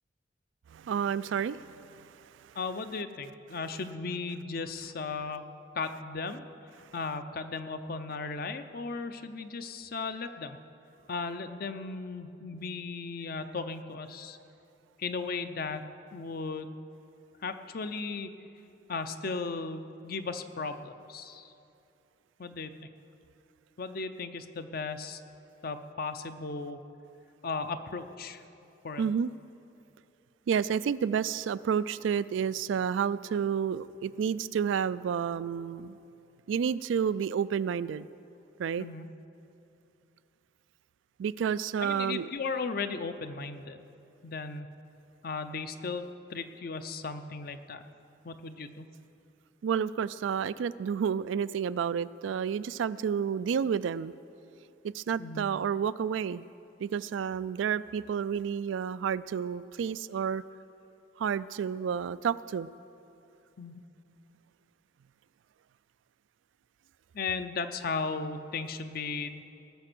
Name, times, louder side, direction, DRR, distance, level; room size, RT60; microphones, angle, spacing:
voice 1, 0.7-2.5 29.0-29.3 30.5-36.0 36.5-38.1 38.6-38.9 41.2-42.3 49.6-54.1 54.8-56.4 56.8-60.4 61.2-62.7, right 7 dB, 80° right, 16 dB, 0.3 m, -30 dB
voice 2, 2.6-6.4 6.9-10.6 11.1-14.4 15.0-16.7 17.4-18.3 18.9-21.5 22.4-22.9 23.8-25.2 25.6-26.8 27.4-28.4 28.8-29.0 38.8-39.1 41.8-43.8 44.2-44.8 45.2-47.8 48.2-48.9 55.2-55.5 63.6-63.8 67.1-69.4, left 4 dB, 50° left, 9 dB, 0.6 m, -36 dB
19.0 x 6.7 x 6.1 m, 2.8 s
head